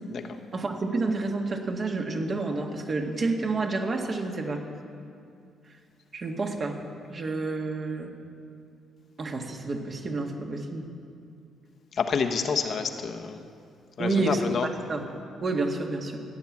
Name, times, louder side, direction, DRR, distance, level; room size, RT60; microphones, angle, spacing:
voice 1, 0.5-4.6 6.1-6.8 7.1-8.1 9.2-10.9 14.0-15.0 15.4-16.2, right 3 dB, 40° right, 2 dB, 1.8 m, -29 dB
voice 2, 11.9-13.5 14.0-14.7, left 6 dB, 55° left, 6 dB, 1.1 m, -28 dB
14.5 x 9.0 x 7.3 m, 2.4 s
cardioid pair, 90°, 0 cm